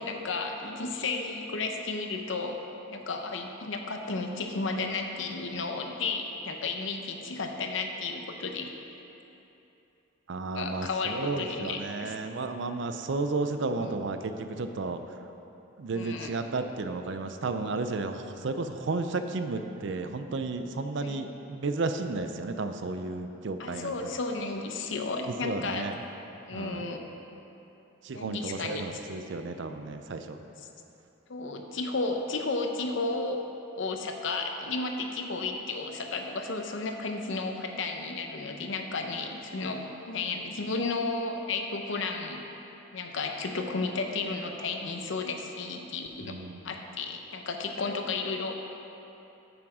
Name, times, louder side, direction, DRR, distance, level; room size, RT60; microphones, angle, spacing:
voice 1, 0.0-2.6 2.9-8.7 10.5-12.1 13.7-14.0 15.9-16.3 21.0-21.2 23.6-25.9 26.5-27.0 28.1-29.0 30.6-30.7 31.3-33.4 33.8-42.4 42.9-46.3 46.6-48.5, left 3 dB, 60° left, 4 dB, 0.7 m, -33 dB
voice 2, 10.3-15.0 15.8-23.9 25.4-26.0 26.5-26.8 28.0-30.4 46.2-46.7, right 3 dB, 60° right, 8 dB, 0.4 m, -33 dB
8.8 x 6.0 x 4.9 m, 3.0 s
head